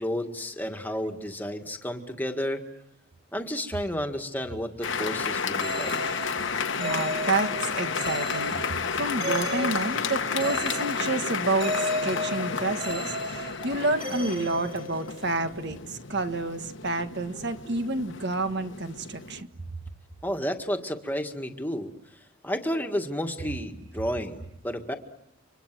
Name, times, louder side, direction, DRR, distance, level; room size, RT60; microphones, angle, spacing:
voice 1, 0.0-2.6 3.3-6.0 20.2-21.9 22.4-24.9, equal, 10° left, 4 dB, 1.9 m, -31 dB
sound 1, 4.8-19.4, left 5 dB, 55° left, 1.3 m, -32 dB
sound 2, 5.6-15.4, equal, 25° right, 2.6 m, -35 dB
voice 2, 6.8-19.5, right 2 dB, 50° right, 8 dB, 1.6 m, -29 dB
Gasp, 8.8-9.2 9.8-10.4 10.8-13.3 13.8-14.9 15.5-15.6, left 5 dB, 35° left, 1.2 m, -46 dB
30.0 x 25.5 x 7.7 m, 0.82 s
head